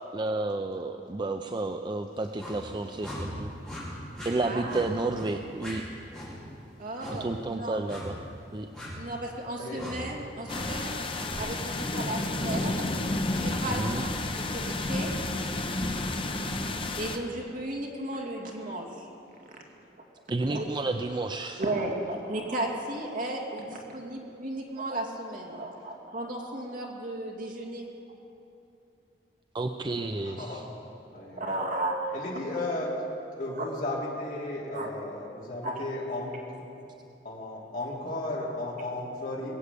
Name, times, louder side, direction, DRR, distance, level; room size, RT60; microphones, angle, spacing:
voice 1, 0.1-3.5 4.2-5.8 7.2-8.2 8.5-8.7 13.7-14.0 20.3-21.6 29.5-30.6, right 2 dB, 25° right, 6 dB, 0.4 m, -31 dB
sound 1, 2.4-2.6 3.0-3.2 3.6-3.8 4.1-4.3 4.7-4.8 5.1-5.3 5.6-5.7 6.1-6.3 7.0-7.2 7.9-8.1 8.7-8.9 9.7-9.9 10.4-10.6 11.1-11.3, left 1 dB, 5° left, 5.2 m, -40 dB
voice 2, 4.4-4.9 6.8-7.8 8.9-11.0 11.4-12.8 13.3-14.1 14.5-15.1 17.0-19.1 20.5-20.7 21.6-27.9 31.3-32.2 33.6-33.7 34.7-34.9 35.6-35.8, right 1 dB, 50° right, -1 dB, 2.3 m, -34 dB
sound 2, 10.5-17.2, left 2 dB, 30° left, 0.9 m, -31 dB
voice 3, 29.7-30.7 31.1-31.7 32.1-33.0 33.3-36.7 37.2-39.5, left 2 dB, 50° left, -5 dB, 3.0 m, -35 dB
21.0 x 8.1 x 8.3 m, 2.8 s
head